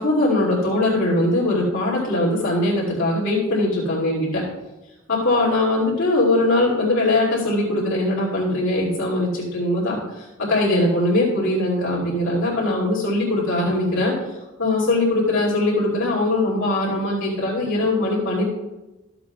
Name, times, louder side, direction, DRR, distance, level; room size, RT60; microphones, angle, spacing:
voice 1, 0.0-4.4 5.1-14.1 14.6-18.4, left 2 dB, 65° left, -6 dB, 2.7 m, -21 dB
14.0 x 7.7 x 2.4 m, 1.0 s
head